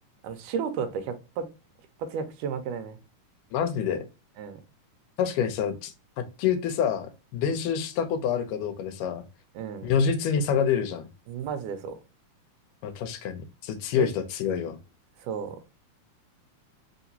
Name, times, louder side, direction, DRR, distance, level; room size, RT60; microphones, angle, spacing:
voice 1, 0.2-1.5 2.0-3.0 4.4-4.6 9.6-9.9 11.3-12.0 14.0-14.1 15.2-15.6, right 6 dB, 90° right, 2.2 m, -32 dB
voice 2, 3.5-4.0 5.2-9.2 9.8-11.1 12.8-14.8, left 7 dB, 90° left, 2.3 m, -27 dB
5.0 x 2.9 x 2.7 m
omnidirectional pair, 3.6 m